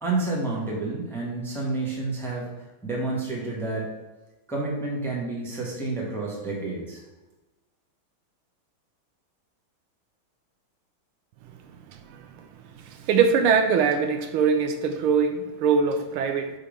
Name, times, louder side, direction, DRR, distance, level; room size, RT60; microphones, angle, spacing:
voice 1, 0.0-2.5 2.8-3.9 4.5-7.0, right 2 dB, ahead, -4 dB, 1.0 m, -29 dB
voice 2, 11.9-12.5 12.9-16.5, right 6 dB, 85° right, 7 dB, 1.5 m, -23 dB
5.1 x 4.2 x 5.0 m, 1.1 s
omnidirectional pair, 2.3 m